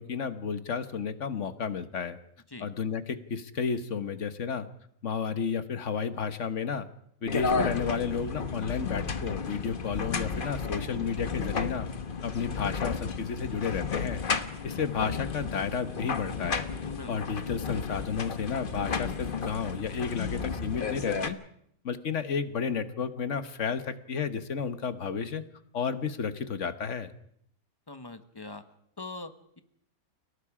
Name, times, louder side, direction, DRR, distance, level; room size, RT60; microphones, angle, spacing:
voice 1, 0.0-2.2 2.6-4.7 5.0-6.9 7.2-11.9 12.2-14.2 14.6-16.7 17.1-21.4 21.8-25.4 25.7-27.1, left 6 dB, 55° left, 11 dB, 1.4 m, -32 dB
sound 1, 7.3-21.3, left 5 dB, 40° left, 1.2 m, -33 dB
voice 2, 27.9-28.6 29.0-29.6, left 3 dB, 15° left, 9 dB, 1.3 m, -42 dB
30.0 x 18.0 x 5.0 m, 0.72 s
omnidirectional pair, 1.5 m